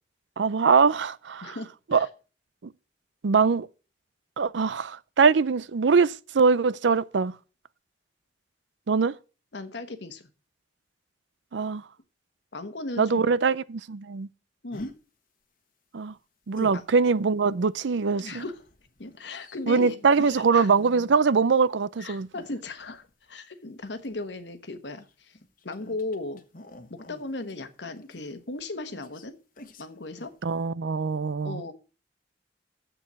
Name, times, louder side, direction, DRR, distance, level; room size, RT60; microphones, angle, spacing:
voice 1, 0.4-1.6 1.9-2.1 2.6-2.7 3.2-3.7 4.4-7.3 8.9-9.1 11.5-11.8 13.0-14.3 15.9-16.1 16.5-18.4 19.7-22.3 30.4-31.6, right 5 dB, 75° right, 0.5 m, -23 dB
voice 2, 1.4-2.1 9.5-10.3 12.5-13.3 14.6-14.9 16.7-16.8 18.2-18.5 19.0-20.7 22.0-25.4 25.6-26.4 26.9-29.4 29.8-30.3 31.4-31.7, left 2 dB, 70° left, 1.2 m, -37 dB
sound 1, 14.7-15.0 16.5-16.9 18.2-21.3 22.3-23.1 23.9-24.2 25.0-28.6 28.9-29.3 29.6-29.9 30.2-30.4, left 1 dB, 50° left, 1.2 m, -46 dB
7.8 x 7.0 x 7.3 m
head